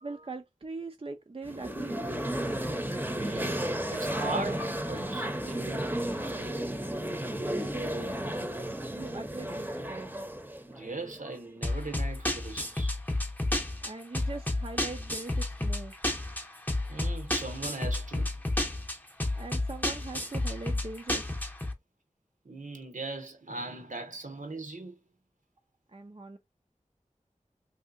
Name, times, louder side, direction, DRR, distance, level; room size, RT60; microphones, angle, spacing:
voice 1, 0.0-2.0 7.5-8.2 8.9-10.1 13.8-15.9 19.4-21.3 25.9-26.4, right 3 dB, 45° right, 0.5 m, -41 dB
sound 1, 1.4-11.5, right 1 dB, 15° right, 0.8 m, -33 dB
voice 2, 3.2-3.6 3.9-6.0 10.7-13.0 16.9-18.4 22.4-25.0, right 3 dB, 75° right, 1.0 m, -39 dB
sound 2, 11.6-21.7, left 1 dB, 15° left, 0.8 m, -31 dB
3.2 x 2.7 x 2.5 m
wide cardioid pair, 50°, 13 cm